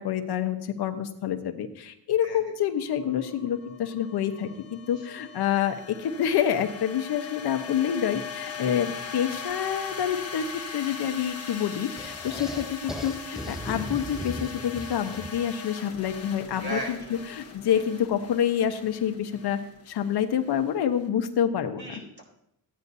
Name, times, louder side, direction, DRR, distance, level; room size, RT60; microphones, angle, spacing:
voice 1, 0.0-19.6 19.9-21.8, left 9 dB, 60° left, 7 dB, 1.0 m, -27 dB
sound 1, 2.7-21.0, left 5 dB, 35° left, 1.3 m, -40 dB
sound 2, 12.0-15.5, equal, ahead, 0.4 m, -38 dB
voice 2, 16.5-17.2 21.8-22.2, right 2 dB, 25° right, -2 dB, 4.0 m, -36 dB
15.5 x 9.4 x 2.7 m, 0.74 s
cardioid pair, 135°, 43 cm